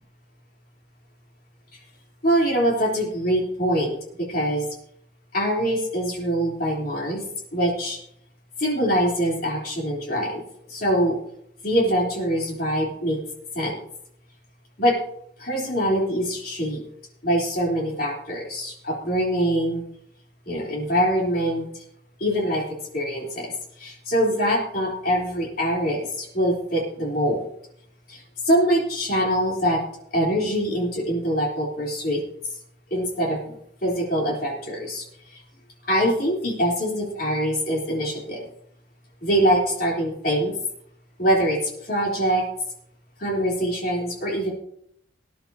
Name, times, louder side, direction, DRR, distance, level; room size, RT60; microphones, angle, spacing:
voice 1, 2.2-4.0 4.3-4.7 5.3-7.2 7.5-8.0 8.6-10.4 10.7-11.2 11.6-13.2 13.5-13.8 14.8-15.0 15.4-16.8 17.2-19.8 20.5-21.7 22.2-22.6 22.9-23.5 23.8-27.5 28.1-29.8 30.1-32.2 32.9-33.5 33.8-35.0 35.9-38.4 39.2-40.5 41.2-42.4 43.2-44.5, equal, 50° left, -1 dB, 3.4 m, -23 dB
19.0 x 10.5 x 2.8 m, 0.71 s
head